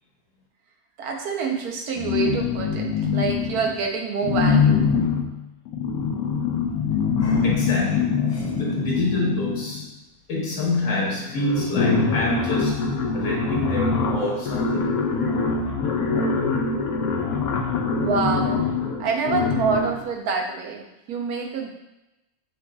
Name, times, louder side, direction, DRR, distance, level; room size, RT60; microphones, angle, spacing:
voice 1, 1.0-4.9 18.0-18.6 19.0-21.7, right 5 dB, 80° right, 1 dB, 1.2 m, -27 dB
sound 1, 2.0-3.8 4.2-9.9 10.8-10.9 11.2-20.1, left 5 dB, 75° left, 1.0 m, -24 dB
voice 2, 7.2-9.8 10.3-12.8 13.1-14.9, left 2 dB, 55° left, -3 dB, 1.2 m, -27 dB
6.7 x 2.7 x 2.2 m, 0.93 s
omnidirectional pair, 1.6 m